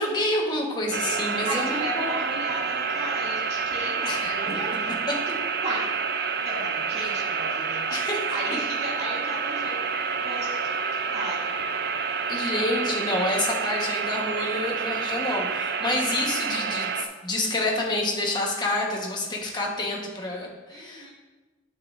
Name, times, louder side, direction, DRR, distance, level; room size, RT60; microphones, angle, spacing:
voice 1, 0.0-2.2 4.0-4.6 7.0-7.1 7.9-8.2 12.3-21.1, left 1 dB, 20° left, -1 dB, 1.2 m, -28 dB
sound 1, 0.9-17.0, right 5 dB, 55° right, 0.5 m, -28 dB
voice 2, 1.5-5.4 5.6-5.9 6.4-8.0 8.3-11.5 20.7-21.1, right 1 dB, 35° right, -6 dB, 2.4 m, -35 dB
9.2 x 7.2 x 2.6 m, 1.3 s
head